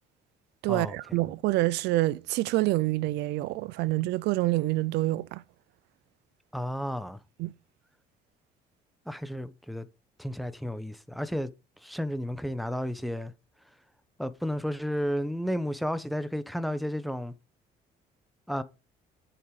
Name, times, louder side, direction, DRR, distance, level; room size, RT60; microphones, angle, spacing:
voice 1, 0.6-5.4 7.4-7.5, right 18 dB, 85° right, 0.5 m, -27 dB
voice 2, 6.5-7.2 9.1-9.9 10.2-11.5 11.8-13.3 14.2-17.3 18.5-18.6, equal, ahead, 0.9 m, -32 dB
7.8 x 6.1 x 4.9 m
cardioid pair, 110°, 17 cm